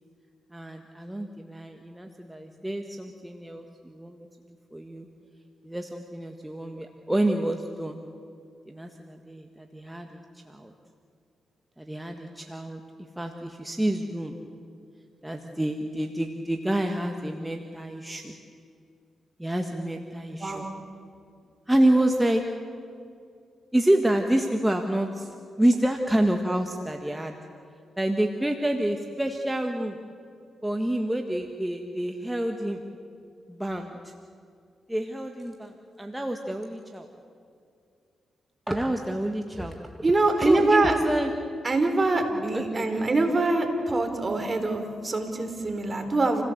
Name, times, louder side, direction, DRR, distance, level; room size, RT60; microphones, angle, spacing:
voice 1, 0.5-4.3 4.7-5.1 5.6-8.0 8.7-10.7 11.8-12.8 13.2-14.4 15.2-18.3 19.4-20.6 21.7-22.4 23.7-27.3 28.0-30.0 30.6-32.8 33.5-34.1 34.9-37.1 38.7-39.8 40.4-41.3 42.5-43.3, right 1 dB, 10° right, 4 dB, 1.7 m, -28 dB
voice 2, 40.0-40.9 41.6-46.4, right 2 dB, 35° right, 5 dB, 4.1 m, -24 dB
28.5 x 16.5 x 8.0 m, 2.4 s
cardioid pair, 60°, 0 cm